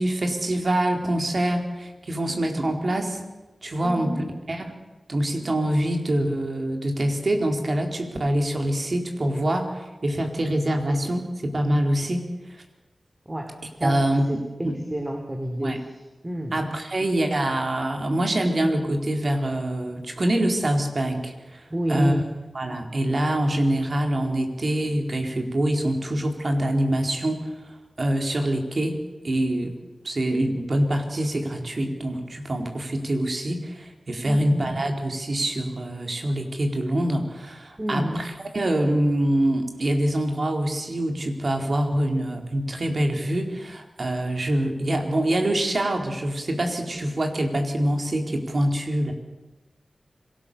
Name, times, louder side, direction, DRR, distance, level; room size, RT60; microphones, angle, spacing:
voice 1, 0.0-3.2 3.6-4.7 5.1-12.6 13.8-14.8 15.6-15.8 16.5-21.6 21.9-22.1 22.5-27.5 28.0-29.0 29.2-29.7 30.0-49.1, right 1 dB, 55° right, 4 dB, 4.2 m, -25 dB
voice 2, 3.8-4.3 13.3-14.0 14.3-15.8 16.2-16.5 21.7-22.2 34.2-34.7 37.8-38.2, right 1 dB, 25° right, 3 dB, 3.5 m, -29 dB
26.0 x 18.5 x 7.0 m, 1.1 s
cardioid pair, 50°, 0 cm